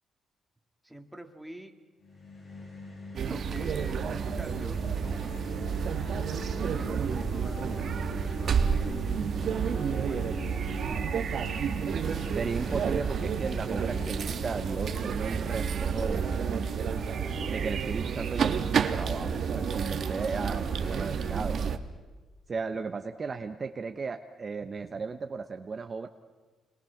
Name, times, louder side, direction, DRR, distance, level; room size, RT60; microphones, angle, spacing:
voice 1, 0.8-1.7 3.2-5.6 6.6-9.3 9.8-11.1, right 1 dB, 5° right, 4 dB, 2.3 m, -47 dB
sound 1, 2.0-14.6, left 3 dB, 50° left, 7.4 m, -44 dB
sound 2, 3.1-21.8, right 7 dB, 60° right, 1.3 m, -30 dB
sound 3, 4.3-21.6, left 1 dB, 80° left, 5.1 m, -45 dB
voice 2, 12.3-16.4 17.5-21.7 22.5-26.1, right 4 dB, 35° right, 7 dB, 1.0 m, -35 dB
26.5 x 21.5 x 5.9 m, 1.3 s
cardioid pair, 90°, 0 cm